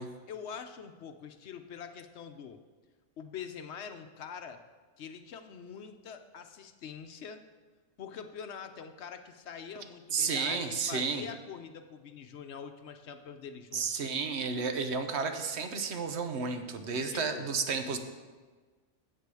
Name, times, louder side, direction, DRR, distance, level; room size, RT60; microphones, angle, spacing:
voice 1, 0.3-2.6 3.2-4.6 5.0-7.4 8.0-13.9 17.1-17.5, left 7 dB, 65° left, 8 dB, 0.9 m, -44 dB
voice 2, 10.1-11.2 13.7-18.0, right 5 dB, 65° right, 7 dB, 1.1 m, -32 dB
8.0 x 7.7 x 6.8 m, 1.4 s
omnidirectional pair, 1.3 m